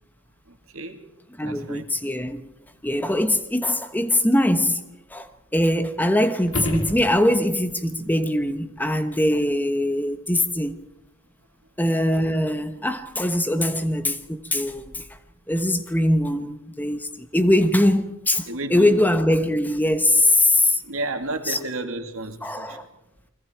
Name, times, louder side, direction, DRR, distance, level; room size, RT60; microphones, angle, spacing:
voice 1, 0.5-1.0 1.4-1.8 18.5-19.0 20.5-22.8, right 2 dB, 75° right, 2.5 m, -32 dB
voice 2, 1.4-2.5 2.8-4.8 5.1-10.8 11.8-15.1 15.5-20.8 21.4-21.6 22.4-22.8, left 1 dB, 10° left, 1.0 m, -22 dB
sound 1, 6.4-7.7 12.5-12.6, left 1 dB, 65° left, 2.6 m, -30 dB
29.5 x 21.5 x 4.5 m
head